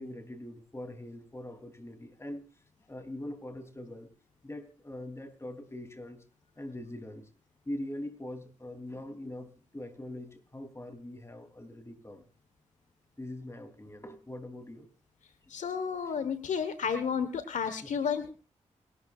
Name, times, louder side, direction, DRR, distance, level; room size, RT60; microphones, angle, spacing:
voice 1, 0.0-2.4 2.9-4.1 4.4-6.2 6.6-7.3 7.7-12.2 13.2-14.9 16.0-16.2 17.8-17.9, left 1 dB, 20° left, 7 dB, 3.5 m, -42 dB
voice 2, 15.5-18.3, left 6 dB, 80° left, 10 dB, 1.4 m, -32 dB
28.0 x 13.0 x 2.5 m, 0.34 s
cardioid pair, 55°, 12 cm